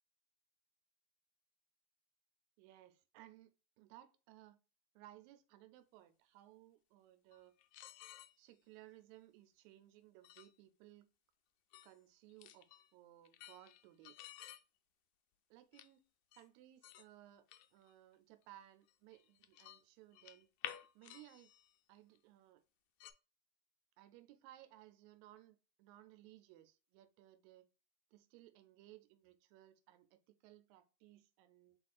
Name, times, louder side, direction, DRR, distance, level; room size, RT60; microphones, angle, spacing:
voice 1, 2.6-4.6 5.0-7.5 8.4-11.1 11.8-14.2 15.5-16.1 16.4-17.5 17.7-20.5 21.0-21.5 21.9-22.6 24.0-27.7 28.1-31.8, right 14 dB, 80° right, 1.9 m, -61 dB
sound 1, 7.3-8.3 10.2-10.5 11.7-11.9 12.3-12.9 13.2-14.6 15.7-15.9 16.3-16.4 16.8-17.1 17.5-17.9 18.4-18.5 18.9-19.8 20.1-21.8 22.2-22.3 23.0-23.1, left 13 dB, 80° left, 1.8 m, -53 dB
4.4 x 4.2 x 2.4 m
omnidirectional pair, 3.3 m